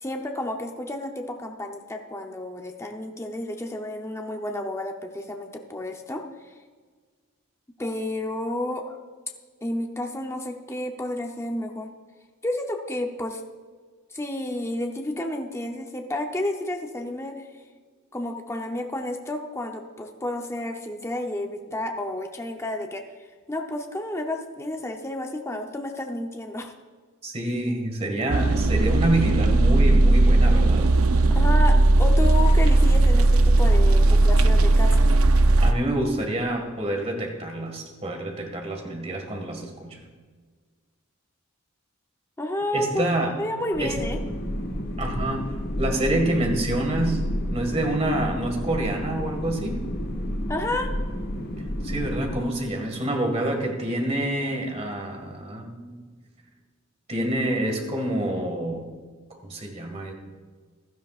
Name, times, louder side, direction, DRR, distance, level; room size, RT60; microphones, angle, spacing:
voice 1, 0.0-6.2 6.5-6.6 7.8-9.0 9.6-11.9 12.4-13.4 14.1-17.4 18.1-23.0 23.5-26.7 31.3-35.0 42.4-43.0 43.4-44.2 50.5-50.9, left 1 dB, 15° left, 3 dB, 0.7 m, -31 dB
voice 2, 27.2-30.9 35.6-40.0 42.7-43.3 43.8-44.0 45.0-47.2 47.5-49.8 51.8-56.1 57.1-58.9 59.4-60.1, right 1 dB, 30° right, 2 dB, 1.9 m, -27 dB
sound 1, 28.3-35.7, right 2 dB, 80° right, 0.6 m, -17 dB
sound 2, 43.7-52.4, equal, 50° left, 1.2 m, -30 dB
16.0 x 12.5 x 2.5 m, 1.5 s
head